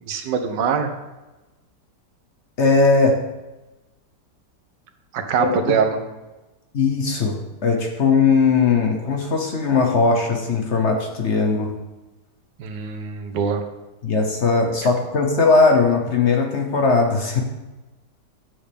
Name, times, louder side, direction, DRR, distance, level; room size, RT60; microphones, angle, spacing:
voice 1, 0.1-0.9 5.1-6.0 12.6-13.6, right 6 dB, 90° right, 6 dB, 1.5 m, -23 dB
voice 2, 2.6-3.2 5.4-5.7 6.7-7.3 7.6-11.7 14.0-17.4, left 4 dB, 50° left, 2 dB, 1.1 m, -19 dB
9.1 x 7.1 x 3.4 m, 1.1 s
omnidirectional pair, 1.8 m